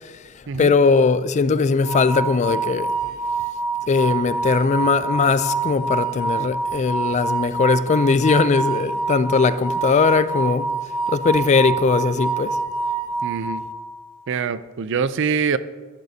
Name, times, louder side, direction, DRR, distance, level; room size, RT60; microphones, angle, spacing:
voice 1, 0.6-2.9 3.9-10.7 11.1-12.6, left 4 dB, 35° left, 0.3 m, -19 dB
sound 1, 1.8-14.1, right 4 dB, 70° left, 0.9 m, -26 dB
voice 2, 13.2-13.6 14.3-15.6, right 6 dB, 60° right, 0.4 m, -24 dB
13.5 x 11.5 x 2.7 m
head